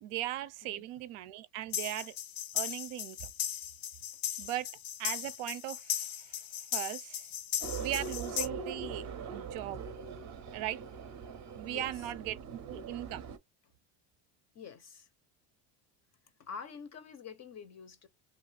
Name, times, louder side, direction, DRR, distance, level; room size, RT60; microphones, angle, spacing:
voice 1, 0.0-2.1 2.5-3.3 4.4-4.7 5.0-6.4 6.7-7.2 7.8-9.8 10.5-10.8 11.5-13.2, right 14 dB, 80° right, 0.6 m, -39 dB
sound 1, 1.7-8.5, left 10 dB, 85° left, 0.7 m, -37 dB
sound 2, 7.6-13.4, right 5 dB, 35° right, 0.6 m, -42 dB
voice 2, 11.6-12.1 14.5-15.1 16.4-18.1, left 6 dB, 35° left, 0.5 m, -47 dB
2.4 x 2.3 x 3.2 m
cardioid pair, 125°, 49 cm